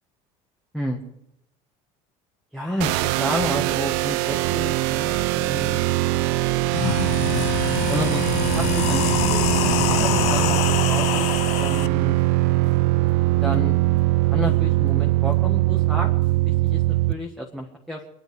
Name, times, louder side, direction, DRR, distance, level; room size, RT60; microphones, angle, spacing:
voice 1, 2.5-5.8 7.9-12.2 13.4-13.8 14.3-16.1 16.4-18.1, equal, ahead, -1 dB, 1.5 m, -31 dB
sound 1, 2.8-17.1, right 18 dB, 75° right, 0.7 m, -21 dB
sound 2, 6.2-6.3 6.6-11.9, left 16 dB, 50° left, 0.5 m, -25 dB
25.0 x 10.5 x 4.9 m, 0.82 s
cardioid pair, 175°, 14 cm